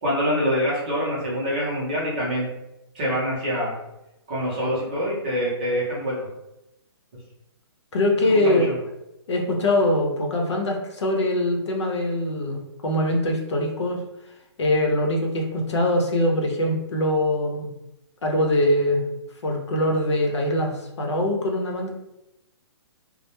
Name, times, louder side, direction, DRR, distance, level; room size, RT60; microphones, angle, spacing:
voice 1, 0.0-2.5 2.9-3.7 4.3-6.2 8.2-8.7, equal, 20° right, -6 dB, 0.5 m, -25 dB
voice 2, 7.9-8.7 9.3-14.0 14.6-17.7 18.2-19.0 19.4-21.9, left 1 dB, 90° left, 1 dB, 0.7 m, -23 dB
2.1 x 2.0 x 2.9 m, 0.90 s
hypercardioid pair, 175°, 14 cm